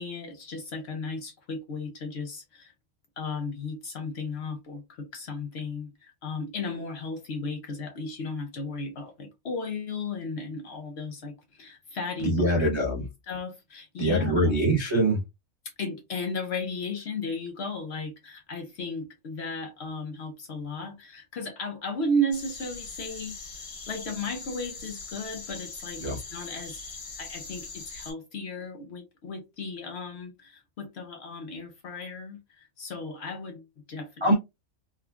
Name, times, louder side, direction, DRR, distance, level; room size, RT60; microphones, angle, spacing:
voice 1, 0.0-2.7 3.2-12.7 13.0-14.6 15.8-23.4 23.9-26.8 27.2-34.3, left 2 dB, 60° left, 0.7 m, -35 dB
voice 2, 12.2-13.1 14.0-15.2 26.0-26.2 34.2-34.3, right 1 dB, 40° right, 0.4 m, -23 dB
sound 1, 22.3-28.1, left 4 dB, 90° left, 1.7 m, -41 dB
3.5 x 2.2 x 2.3 m
omnidirectional pair, 1.4 m